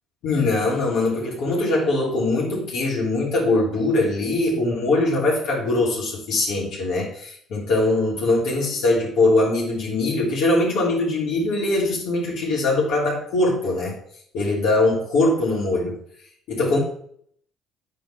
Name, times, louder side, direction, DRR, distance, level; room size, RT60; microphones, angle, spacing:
voice 1, 0.2-14.0 14.3-16.0 16.5-16.8, left 2 dB, 70° left, -5 dB, 3.5 m, -22 dB
9.1 x 4.6 x 4.6 m, 0.63 s
hypercardioid pair, 65°, 0 cm